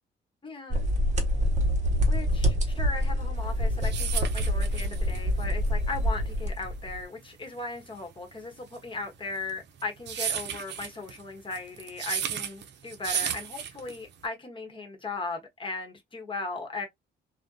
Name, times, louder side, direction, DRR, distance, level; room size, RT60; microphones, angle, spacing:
voice 1, 0.4-0.8 2.1-16.9, left 3 dB, 25° left, 1.0 m, -37 dB
sound 1, 0.7-7.0, equal, 35° right, 0.9 m, -26 dB
sound 2, 3.5-14.2, right 8 dB, 60° right, 0.5 m, -35 dB
2.5 x 2.1 x 2.3 m
cardioid pair, 90°, 20 cm